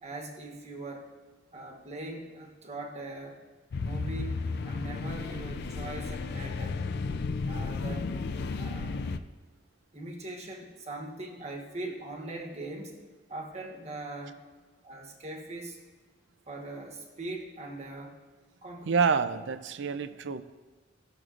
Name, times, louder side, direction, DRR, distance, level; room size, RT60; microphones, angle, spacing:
voice 1, 0.0-1.1 1.5-3.4 3.8-6.8 7.5-8.1 8.5-9.0 9.9-13.0 13.3-14.4 14.8-15.8 16.5-18.2 18.6-19.0, right 2 dB, 35° right, 1 dB, 1.2 m, -41 dB
sound 1, 3.7-9.2, left 4 dB, 55° left, 0.4 m, -33 dB
voice 2, 18.9-20.4, right 5 dB, 65° right, 12 dB, 0.4 m, -27 dB
15.5 x 6.5 x 2.5 m, 1.3 s
head